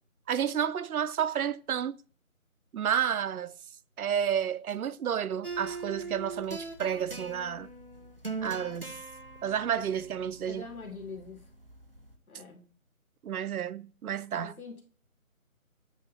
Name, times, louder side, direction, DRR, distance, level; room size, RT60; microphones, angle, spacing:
voice 1, 0.3-1.9 2.7-3.5 4.0-7.7 8.4-9.0 9.4-10.6 13.2-14.5, right 8 dB, 85° right, 0.6 m, -31 dB
sound 1, 5.4-12.2, right 3 dB, 40° right, 0.6 m, -42 dB
voice 2, 10.5-11.5 12.3-12.7 14.4-14.8, left 4 dB, 85° left, 1.9 m, -43 dB
8.1 x 2.8 x 4.1 m
figure-of-eight pair, 180°, 42 cm